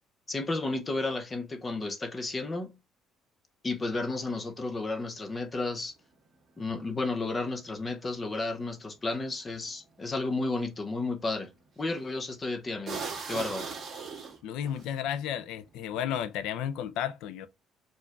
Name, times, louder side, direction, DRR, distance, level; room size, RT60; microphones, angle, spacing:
voice 1, 0.3-2.8 3.6-5.9 6.6-11.5 11.8-13.0 13.3-13.7, left 3 dB, 20° left, 0.6 m, -32 dB
sound 1, 11.8-12.1 12.9-14.9, right 5 dB, 25° right, 1.6 m, -38 dB
voice 2, 14.4-17.5, left 10 dB, 85° left, 0.4 m, -33 dB
4.6 x 2.4 x 4.5 m
cardioid pair, 180°, 0 cm